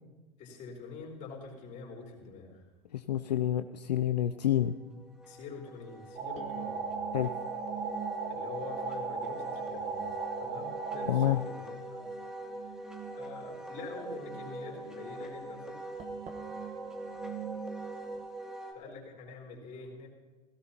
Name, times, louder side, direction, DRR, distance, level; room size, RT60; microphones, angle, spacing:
voice 1, 0.4-2.6 5.3-6.9 8.3-12.0 13.1-15.8 18.7-20.1, left 4 dB, 35° left, -1 dB, 4.2 m, -45 dB
sound 1, 1.0-1.1 3.1-3.3 6.4-18.2, right 8 dB, 30° right, 1.3 m, -47 dB
voice 2, 2.9-4.7 7.1-7.3 11.1-11.4, left 12 dB, 75° left, 11 dB, 0.5 m, -28 dB
Wind instrument woodwind instrument, 4.4-18.7, right 1 dB, 5° right, 2.0 m, -44 dB
sound 2, 6.1-11.3, right 4 dB, 45° right, 4.6 m, -37 dB
17.0 x 17.0 x 2.9 m, 1.2 s
figure-of-eight pair, 95°, 21 cm